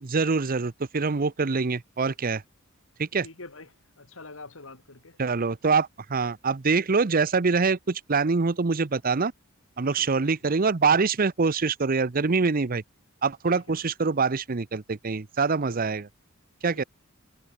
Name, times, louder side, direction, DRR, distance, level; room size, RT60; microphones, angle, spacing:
voice 1, 0.0-2.4 3.0-3.2 5.2-9.3 9.8-12.8 13.2-16.1 16.6-16.8, right 4 dB, 45° right, 0.7 m, -24 dB
voice 2, 3.2-5.2 6.2-6.3 9.9-10.5 13.5-13.9 15.6-15.8 16.7-16.9, left 3 dB, 75° left, 2.8 m, -47 dB
head